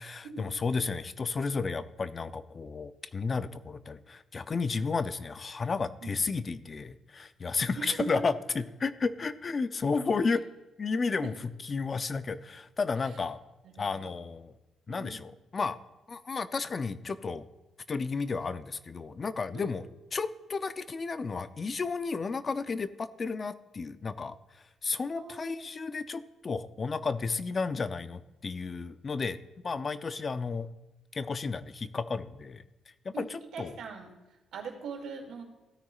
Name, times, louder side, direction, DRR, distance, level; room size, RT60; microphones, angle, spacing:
voice 1, 0.0-10.4 10.8-13.4 13.8-14.5 14.9-15.8 16.1-17.4 17.9-19.8 20.1-24.3 24.8-29.4 29.6-30.7 31.1-32.6 33.1-33.8, left 4 dB, 35° left, 13 dB, 0.5 m, -32 dB
voice 2, 7.7-8.2 11.2-11.3 13.0-13.2 13.6-14.0 14.9-15.2 19.5-19.8 25.2-25.7 33.1-33.3 33.5-34.1 34.5-35.4, right 5 dB, 75° right, 2 dB, 2.3 m, -41 dB
16.0 x 9.5 x 2.4 m, 1.1 s
cardioid pair, 90°, 0 cm